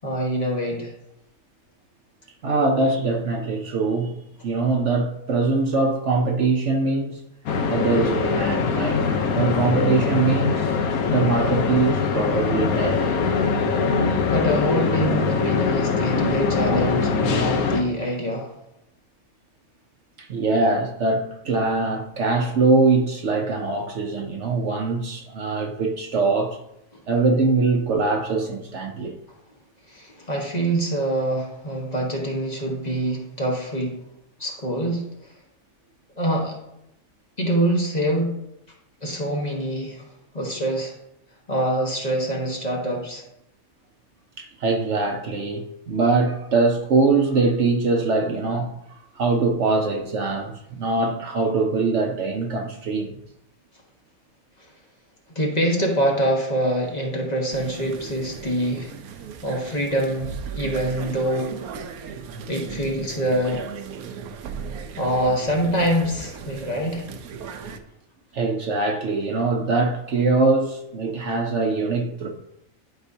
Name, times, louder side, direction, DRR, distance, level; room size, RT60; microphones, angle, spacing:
voice 1, 0.0-0.9 14.2-18.5 26.9-27.0 29.9-34.0 34.4-35.0 36.2-36.6 37.4-38.3 39.0-40.1 40.3-40.9 41.5-43.2 55.3-58.9 59.4-61.5 62.5-63.7 65.0-67.1, right 1 dB, 30° left, 1.4 m, -25 dB
voice 2, 2.4-4.2 4.4-7.2 7.7-10.7 11.0-13.1 20.2-26.6 27.1-29.2 44.4-53.1 68.3-72.3, right 3 dB, 60° right, 1.0 m, -22 dB
sound 1, 7.5-17.8, left 5 dB, 80° left, 1.3 m, -22 dB
sound 2, 57.5-67.8, right 6 dB, 80° right, 1.2 m, -37 dB
11.5 x 5.2 x 2.7 m
omnidirectional pair, 1.5 m